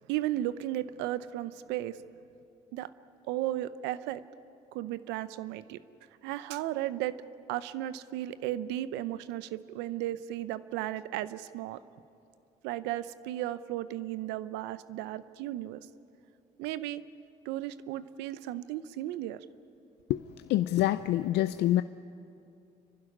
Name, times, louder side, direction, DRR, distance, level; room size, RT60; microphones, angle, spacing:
voice 1, 0.1-2.0 2.7-2.9 3.3-4.2 4.7-5.8 6.2-7.2 7.5-11.8 12.6-15.9 16.6-17.0 17.4-19.4, right 14 dB, 85° right, 15 dB, 0.7 m, -35 dB
voice 2, 20.5-21.8, left 14 dB, 75° left, 12 dB, 0.5 m, -26 dB
30.0 x 12.0 x 9.9 m, 2.7 s
supercardioid pair, 65°, 18 cm